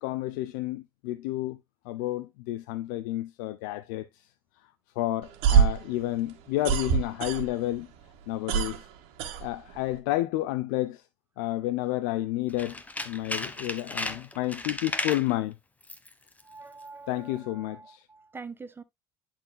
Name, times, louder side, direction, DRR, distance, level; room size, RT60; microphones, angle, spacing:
voice 1, 0.0-1.6 1.9-4.1 5.0-7.9 8.3-8.8 9.4-11.0 11.4-12.8 13.1-15.5 17.1-18.0, left 16 dB, 85° left, 0.6 m, -30 dB
sound 1, 5.2-7.8 8.1-10.0, right 8 dB, 75° right, 1.8 m, -25 dB
Tools, 12.5-15.3 15.8-16.1 16.4-16.5, left 2 dB, 15° left, 1.3 m, -34 dB
voice 2, 16.4-18.8, right 4 dB, 20° right, 1.3 m, -45 dB
11.0 x 4.4 x 2.3 m
supercardioid pair, 80°, 10 cm